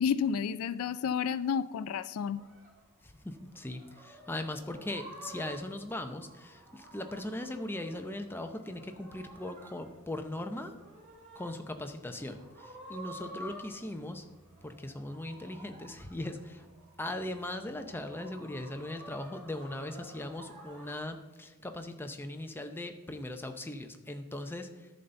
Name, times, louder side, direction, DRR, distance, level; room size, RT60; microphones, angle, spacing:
voice 1, 0.0-2.4, left 7 dB, 70° left, 16 dB, 0.3 m, -31 dB
sound 1, 2.3-21.0, right 1 dB, 35° right, 1.8 m, -51 dB
voice 2, 3.0-10.7 11.3-14.2 14.6-16.7 17.0-24.9, left 1 dB, 10° left, 6 dB, 0.6 m, -39 dB
11.0 x 4.1 x 6.8 m, 1.1 s
head